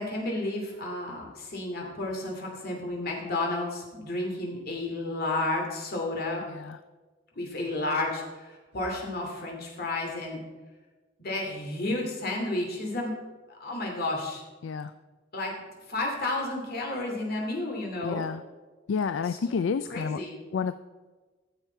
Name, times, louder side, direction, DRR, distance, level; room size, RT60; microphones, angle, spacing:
voice 1, 0.0-6.4 7.3-10.4 11.2-13.1 13.5-14.4 15.3-15.5 15.9-18.3 19.9-20.4, left 2 dB, 55° left, 0 dB, 2.6 m, -31 dB
voice 2, 6.5-6.8 14.6-14.9 18.0-18.4 18.9-20.2 20.5-20.7, left 5 dB, 75° left, 12 dB, 0.4 m, -29 dB
13.5 x 7.3 x 4.4 m, 1.3 s
head